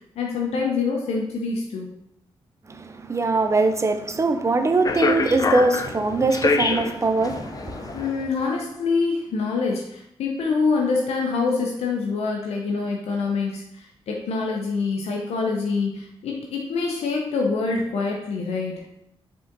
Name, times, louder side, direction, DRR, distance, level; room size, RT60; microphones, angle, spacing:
voice 1, 0.2-1.9 7.9-18.8, left 4 dB, 85° left, 0.6 m, -25 dB
voice 2, 2.7-8.0, right 3 dB, 30° right, 0.5 m, -22 dB
sound 1, 4.8-8.3, left 4 dB, 35° left, 0.4 m, -26 dB
4.9 x 3.7 x 2.6 m
cardioid pair, 65°, 10 cm